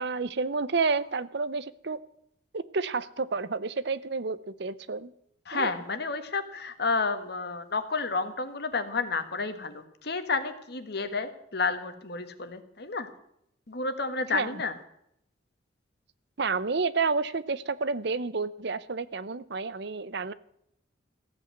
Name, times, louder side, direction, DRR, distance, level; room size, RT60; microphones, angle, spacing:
voice 1, 0.0-2.0 2.5-5.1 5.5-5.7 14.3-14.6 16.4-20.3, right 4 dB, 60° right, 16 dB, 0.7 m, -30 dB
voice 2, 5.4-13.1 13.7-14.8, left 4 dB, 60° left, 9 dB, 1.6 m, -31 dB
15.5 x 8.3 x 7.8 m, 0.73 s
head